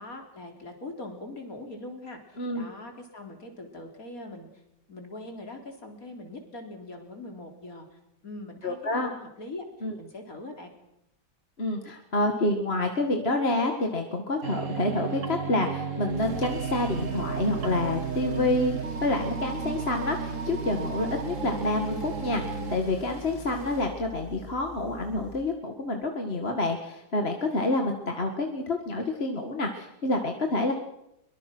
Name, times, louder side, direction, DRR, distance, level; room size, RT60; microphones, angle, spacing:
voice 1, 0.0-4.5 4.9-9.6 10.0-10.7, left 2 dB, 55° left, 3 dB, 4.1 m, -42 dB
voice 2, 8.6-9.1 9.8-9.9 11.6-30.7, left 2 dB, 35° left, 4 dB, 2.1 m, -28 dB
sound 1, 14.4-22.8, right 6 dB, 50° right, 1.7 m, -33 dB
Tools, 16.1-25.6, left 1 dB, 20° left, 1.6 m, -43 dB
23.5 x 23.5 x 6.2 m, 0.84 s
omnidirectional pair, 1.8 m